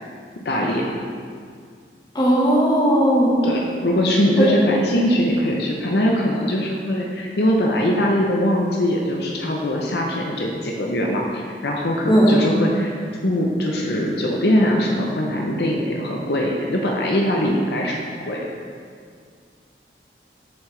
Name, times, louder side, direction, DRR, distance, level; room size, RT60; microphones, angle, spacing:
voice 1, 0.4-0.8 3.4-12.9 13.2-18.0 18.3-18.5, equal, 70° left, -1 dB, 0.8 m, -21 dB
voice 2, 2.1-3.4 12.1-12.5, equal, 25° left, -5 dB, 1.3 m, -17 dB
7.4 x 7.3 x 3.3 m, 2.1 s
head